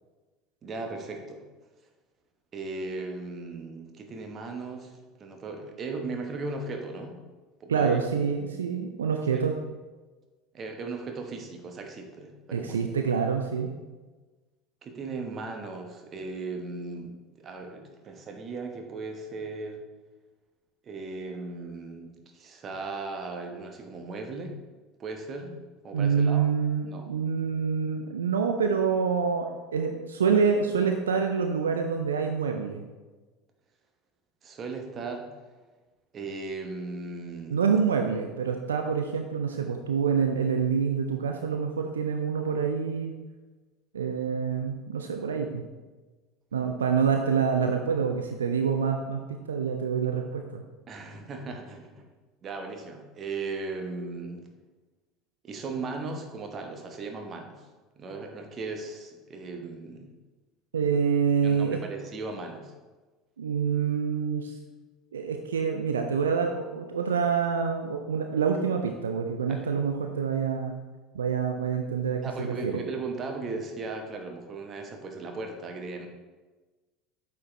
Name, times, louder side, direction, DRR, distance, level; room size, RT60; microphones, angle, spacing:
voice 1, 0.6-1.4 2.5-7.2 7.6-8.0 9.3-9.6 10.5-13.0 14.8-19.8 20.8-24.5 25.0-25.6 25.8-26.5 26.9-27.1 34.4-35.3 36.1-37.6 50.9-52.1 52.4-54.5 55.4-57.7 58.0-60.1 61.4-62.7 69.5-69.7 72.2-76.1, right 3 dB, 35° right, 3 dB, 1.0 m, -37 dB
voice 2, 7.7-9.6 12.5-13.7 25.9-32.8 37.5-43.1 43.9-45.6 46.5-50.6 60.7-61.8 63.4-64.6 65.1-70.7 71.1-72.7, right 6 dB, 75° right, 4 dB, 0.4 m, -26 dB
8.4 x 4.5 x 3.2 m, 1.3 s
figure-of-eight pair, 70°, 0 cm